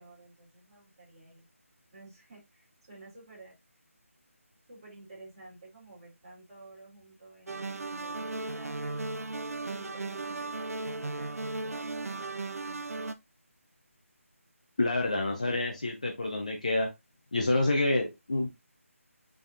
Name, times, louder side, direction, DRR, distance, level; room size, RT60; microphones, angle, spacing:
voice 1, 0.0-1.5 1.9-3.6 4.7-8.8 9.6-12.6, right 2 dB, 20° right, -8 dB, 2.9 m, -52 dB
sound 1, 7.5-13.1, right 3 dB, 85° right, 0.5 m, -36 dB
voice 2, 14.8-16.9 17.3-18.5, left 2 dB, 30° left, 1 dB, 0.6 m, -28 dB
5.3 x 3.5 x 2.5 m, 0.21 s
figure-of-eight pair, 180°, 8 cm